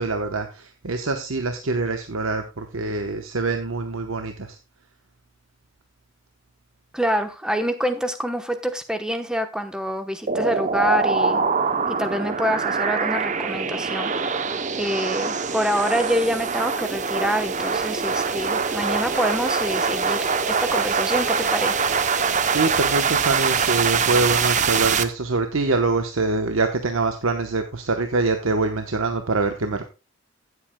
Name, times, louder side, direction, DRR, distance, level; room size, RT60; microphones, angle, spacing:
voice 1, 0.0-4.6 22.5-29.9, right 3 dB, 80° right, 6 dB, 1.0 m, -24 dB
voice 2, 6.9-11.4 12.0-14.4 14.8-20.2 20.5-21.8, equal, 5° right, 7 dB, 0.9 m, -26 dB
sound 1, 10.3-25.0, right 5 dB, 35° right, 0.7 m, -23 dB
16.0 x 8.1 x 2.2 m, 0.29 s
head